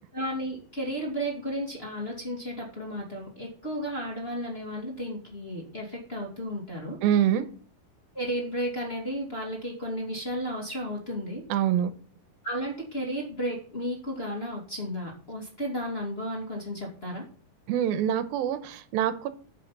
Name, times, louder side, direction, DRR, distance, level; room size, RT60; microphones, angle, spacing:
voice 1, 0.1-7.0 8.1-11.4 12.4-17.2, equal, 20° left, -3 dB, 2.0 m, -33 dB
voice 2, 7.0-7.5 11.5-11.9 17.7-19.3, right 10 dB, 85° right, 12 dB, 2.5 m, -25 dB
9.7 x 5.8 x 5.8 m, 0.43 s
omnidirectional pair, 4.2 m